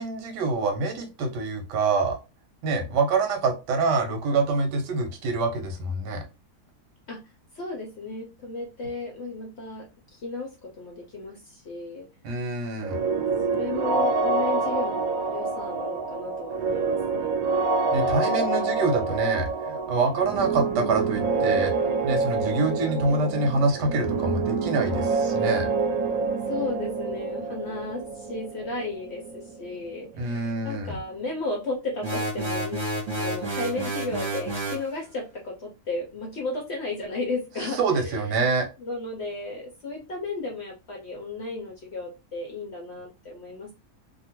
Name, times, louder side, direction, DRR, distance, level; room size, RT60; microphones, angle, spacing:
voice 1, 0.0-2.2 2.6-6.2 12.2-13.0 17.9-21.7 22.0-25.7 30.2-31.0 37.8-38.7, right 3 dB, 90° right, 4 dB, 1.4 m, -26 dB
voice 2, 7.5-12.1 13.5-17.4 26.5-32.8 33.2-38.2 38.8-43.7, left 3 dB, 60° left, 0 dB, 0.7 m, -34 dB
sound 1, 12.8-30.5, right 4 dB, 65° right, 0.9 m, -27 dB
sound 2, 32.0-34.9, right 2 dB, 20° right, 0.8 m, -30 dB
2.8 x 2.5 x 2.9 m, 0.29 s
omnidirectional pair, 1.7 m